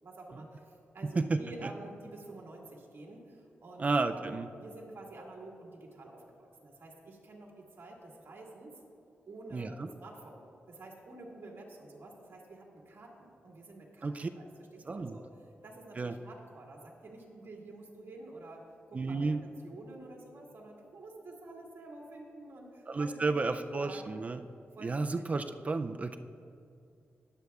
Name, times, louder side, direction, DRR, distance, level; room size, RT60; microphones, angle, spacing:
voice 1, 0.0-8.8 9.3-18.6 18.9-24.2 24.8-25.3, right 2 dB, 55° right, -1 dB, 1.9 m, -49 dB
voice 2, 1.2-1.7 3.8-4.5 9.5-9.9 14.0-14.3 14.9-15.2 16.0-16.1 18.9-19.4 22.9-24.4 24.8-26.2, right 3 dB, 30° right, 9 dB, 0.3 m, -32 dB
21.0 x 7.8 x 2.4 m, 2.4 s
wide cardioid pair, 130°, 5 cm